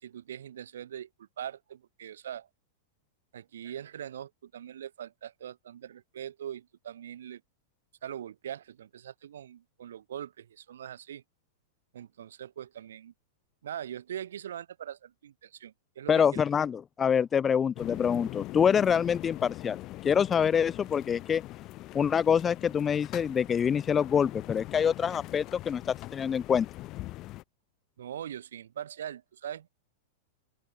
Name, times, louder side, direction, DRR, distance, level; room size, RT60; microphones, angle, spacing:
voice 1, 0.0-2.5 3.3-7.4 8.0-11.2 11.9-13.1 13.6-16.4 28.0-29.7, right 10 dB, 90° right, 4.7 m, -42 dB
voice 2, 16.1-21.4 21.9-26.7, left 7 dB, 15° left, 0.5 m, -26 dB
sound 1, 17.8-27.4, left 17 dB, 30° left, 3.4 m, -42 dB
open air
supercardioid pair, 155°, 0 cm